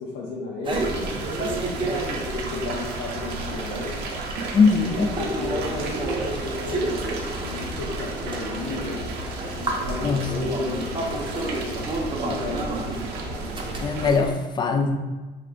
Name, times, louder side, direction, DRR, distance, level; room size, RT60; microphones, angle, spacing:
voice 1, 0.0-4.0 4.7-7.1 7.4-9.0 9.7-11.8 12.2-13.1, left 3 dB, 85° left, -3 dB, 0.6 m, -33 dB
sound 1, 0.6-14.3, right 2 dB, 30° right, 0.6 m, -32 dB
sound 2, 0.7-14.1, right 2 dB, 80° right, 0.6 m, -33 dB
voice 2, 4.5-5.1 10.0-10.3 13.8-15.0, left 4 dB, 25° left, 5 dB, 0.4 m, -21 dB
3.6 x 3.2 x 2.5 m, 1.2 s
cardioid pair, 110°, 17 cm